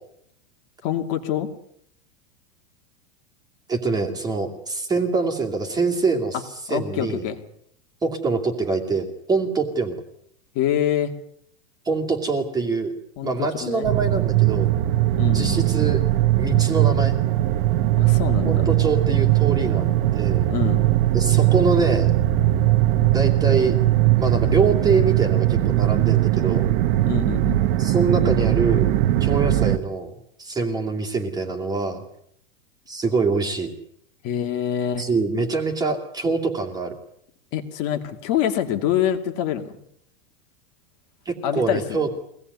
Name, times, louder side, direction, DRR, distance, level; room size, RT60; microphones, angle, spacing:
voice 1, 0.8-1.5 6.7-7.4 10.5-11.1 13.2-13.9 15.2-15.7 18.0-18.6 20.5-20.9 27.1-27.6 34.2-35.1 37.5-39.8 41.4-42.1, left 10 dB, 35° left, 5 dB, 2.5 m, -25 dB
voice 2, 3.7-6.4 6.7-7.3 8.0-10.0 11.8-12.9 13.2-14.7 15.3-16.0 16.4-17.2 18.4-19.9 20.1-20.5 21.1-22.1 23.1-23.8 24.2-26.7 27.8-28.9 29.2-30.1 30.4-32.0 32.9-33.7 35.0-36.9 41.3-42.1, right 4 dB, 10° right, 2 dB, 2.5 m, -24 dB
sound 1, 13.8-29.8, right 14 dB, 40° right, 1.3 m, -20 dB
24.0 x 18.0 x 9.6 m, 0.71 s
supercardioid pair, 170°, 40 cm